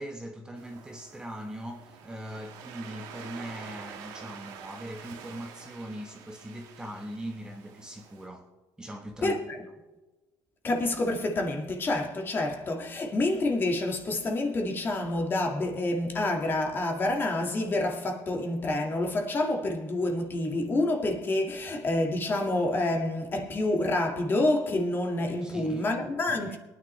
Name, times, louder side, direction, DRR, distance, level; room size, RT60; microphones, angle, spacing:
voice 1, 0.0-8.5 8.8-9.7 25.4-25.9 26.3-26.6, equal, 10° right, 1.2 m, -41 dB
Waves surf, 0.6-8.3, right 7 dB, 75° right, 1.6 m, -47 dB
voice 2, 9.2-9.6 10.6-26.6, left 2 dB, 30° left, 1.9 m, -28 dB
23.0 x 9.8 x 3.3 m
cardioid pair, 115°, 7 cm